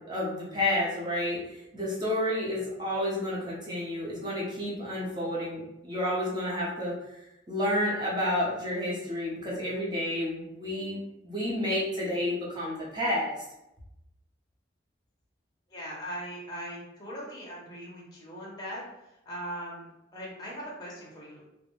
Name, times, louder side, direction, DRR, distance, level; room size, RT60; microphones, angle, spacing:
voice 1, 0.0-6.9 7.5-11.0 11.2-13.3, left 1 dB, 25° right, -6 dB, 0.7 m, -30 dB
voice 2, 15.7-19.9 20.1-21.6, equal, 20° left, -5 dB, 0.6 m, -40 dB
2.4 x 2.2 x 3.0 m, 0.88 s
head